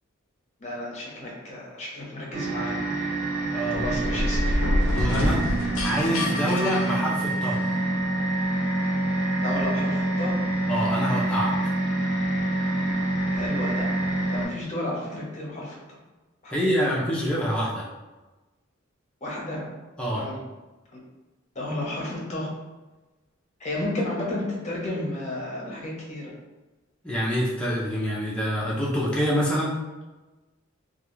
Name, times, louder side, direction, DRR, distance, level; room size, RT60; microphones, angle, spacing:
voice 1, 0.6-2.9 3.7-4.6 9.4-10.5 13.3-13.9 14.2-16.0 16.4-16.9 19.2-19.8 20.1-20.4 20.9-21.0 21.5-22.5 23.6-26.3, left 1 dB, 35° left, -4 dB, 0.7 m, -32 dB
sound 1, 2.3-14.4, right 2 dB, 55° right, 0.7 m, -27 dB
voice 2, 3.5-4.0 4.9-7.6 10.7-11.5 16.5-17.9 20.0-20.2 27.0-29.8, equal, 5° left, -6 dB, 0.4 m, -26 dB
sound 2, 3.7-7.7, left 1 dB, 70° left, 0.4 m, -27 dB
2.3 x 2.3 x 3.0 m, 1.2 s
head